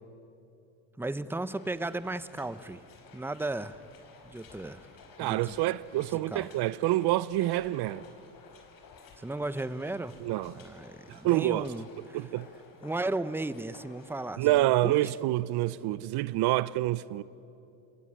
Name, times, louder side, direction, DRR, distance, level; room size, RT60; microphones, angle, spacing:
voice 1, 1.0-2.8 3.1-3.8 4.2-4.9 5.2-5.5 6.3-6.5 9.2-10.1 10.5-12.2 12.8-15.1, right 2 dB, 5° right, 0.9 m, -35 dB
sound 1, 1.5-14.3, left 5 dB, 50° left, 5.0 m, -54 dB
voice 2, 5.2-8.1 10.2-10.5 11.1-11.7 12.1-12.5 14.4-17.2, right 16 dB, 65° right, 0.7 m, -27 dB
27.0 x 22.0 x 9.9 m
supercardioid pair, 90°, 43 cm